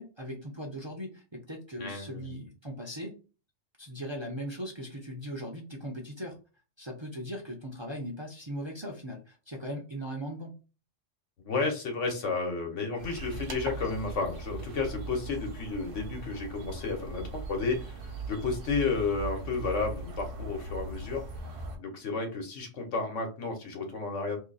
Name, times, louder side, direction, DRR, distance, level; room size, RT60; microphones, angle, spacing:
voice 1, 0.0-3.1 3.8-6.4 6.8-10.5, equal, 30° right, -1 dB, 0.6 m, -39 dB
voice 2, 1.8-2.4 11.4-21.2 21.8-24.4, left 4 dB, 75° left, 3 dB, 1.3 m, -32 dB
sound 1, 13.0-21.8, right 3 dB, 50° right, 0.9 m, -39 dB
2.7 x 2.7 x 3.9 m, 0.34 s
omnidirectional pair, 1.3 m